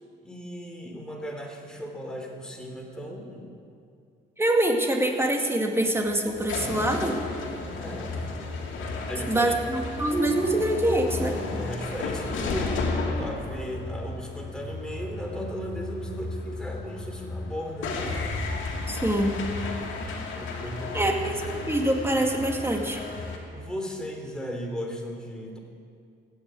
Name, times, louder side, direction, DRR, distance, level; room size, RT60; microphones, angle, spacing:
voice 1, 0.2-3.5 7.8-8.2 9.1-9.5 11.5-18.1 20.3-21.1 21.5-21.7 23.5-25.6, equal, 5° left, 0 dB, 3.3 m, -36 dB
voice 2, 4.4-7.2 9.3-11.4 18.9-19.4 20.9-23.0, right 1 dB, 10° right, 2 dB, 2.2 m, -25 dB
sound 1, 5.9-23.4, left 3 dB, 80° left, 2.6 m, -33 dB
16.0 x 9.7 x 8.4 m, 2.3 s
cardioid pair, 90°, 20 cm